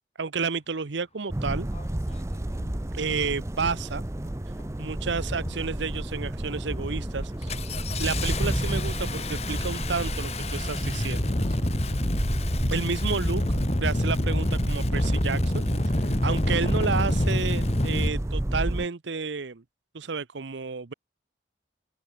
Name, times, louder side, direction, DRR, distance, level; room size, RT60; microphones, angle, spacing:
voice 1, 0.2-1.7 2.9-4.0 4.8-7.6 8.0-11.6 12.7-13.4 13.8-19.6 19.9-20.9, right 5 dB, 80° right, 0.8 m, -31 dB
sound 1, 1.3-18.9, right 1 dB, 15° right, 0.5 m, -31 dB
Engine starting, 1.7-1.8 2.6-2.9 3.6-3.9 4.3-4.8 5.2-5.8 6.2-6.4 6.7-18.1, left 1 dB, 35° left, 1.7 m, -28 dB
open air
head